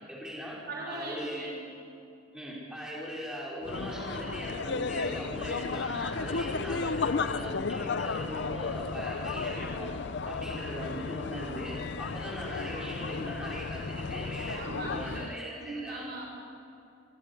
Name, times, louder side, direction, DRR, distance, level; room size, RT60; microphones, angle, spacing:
voice 1, 0.1-0.6 0.9-1.5 2.3-9.9 10.3-14.6 14.9-16.2, equal, 5° right, -6 dB, 4.7 m, -39 dB
voice 2, 0.7-1.7 14.5-16.3, right 2 dB, 50° right, -1 dB, 6.4 m, -39 dB
sound 1, 3.6-15.4, left 4 dB, 55° left, 0.6 m, -34 dB
23.5 x 16.0 x 8.4 m, 2.6 s
head